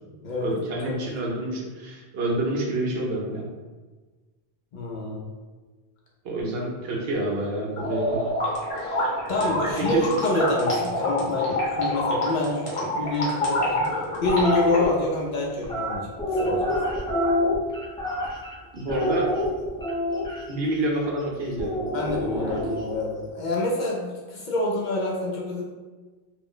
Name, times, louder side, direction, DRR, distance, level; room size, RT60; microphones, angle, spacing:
voice 1, 0.4-3.5 6.2-8.2 8.8-9.0 9.4-10.0 18.7-19.3 20.5-21.8, right 1 dB, 75° right, -1 dB, 0.9 m, -28 dB
voice 2, 4.7-5.3 9.3-13.9 14.2-16.6 21.9-25.6, left 2 dB, 55° left, -3 dB, 0.6 m, -27 dB
sound 1, 7.8-14.8, left 1 dB, 35° left, 0.9 m, -27 dB
sound 2, 14.3-14.8 15.6-18.5 18.9-20.4 21.6-22.9, left 1 dB, 5° left, 0.4 m, -26 dB
2.4 x 2.0 x 3.7 m, 1.3 s
omnidirectional pair, 1.0 m